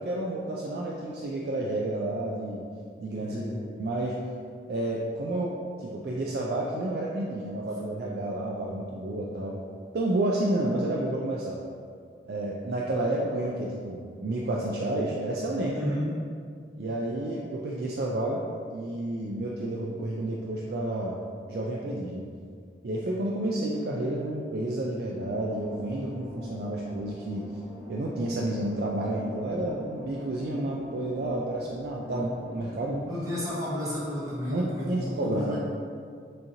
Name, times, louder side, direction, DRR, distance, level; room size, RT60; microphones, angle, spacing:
voice 1, 0.0-2.6 3.0-3.4 3.8-4.2 4.7-9.6 9.9-11.6 12.3-15.8 16.8-18.4 18.7-21.2 21.5-22.2 22.8-27.5 27.9-33.1 34.5-35.6, right 1 dB, 60° right, -3 dB, 0.4 m, -30 dB
voice 2, 3.2-3.6 15.7-16.1 32.0-32.3 33.0-35.6, left 1 dB, 20° right, -8 dB, 1.0 m, -32 dB
sound 1, 25.1-32.9, equal, 5° left, 0.5 m, -44 dB
6.2 x 2.9 x 2.7 m, 2.2 s
head